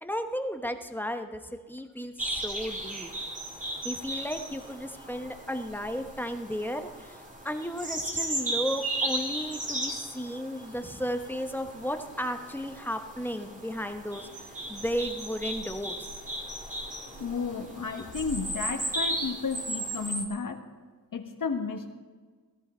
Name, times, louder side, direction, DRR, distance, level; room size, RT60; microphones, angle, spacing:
voice 1, 0.0-3.1 3.8-16.1, equal, 5° left, 6 dB, 1.0 m, -34 dB
sound 1, 2.2-20.3, right 1 dB, 20° right, 2.0 m, -36 dB
voice 2, 17.2-20.6 21.1-21.9, left 5 dB, 65° left, 6 dB, 1.5 m, -33 dB
16.5 x 13.5 x 4.4 m, 1.5 s
wide cardioid pair, 100°, 35 cm